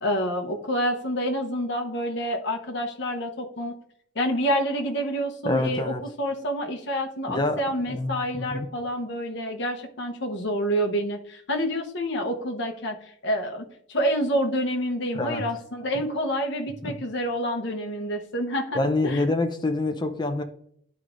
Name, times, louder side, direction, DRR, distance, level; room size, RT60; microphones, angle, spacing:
voice 1, 0.0-3.8 4.1-19.2, equal, 55° left, 0.9 m, -28 dB
voice 2, 5.4-6.0 7.3-8.7 15.1-15.4 16.8-16.9 18.7-20.4, left 2 dB, 20° left, 0.6 m, -26 dB
11.5 x 4.8 x 2.5 m
head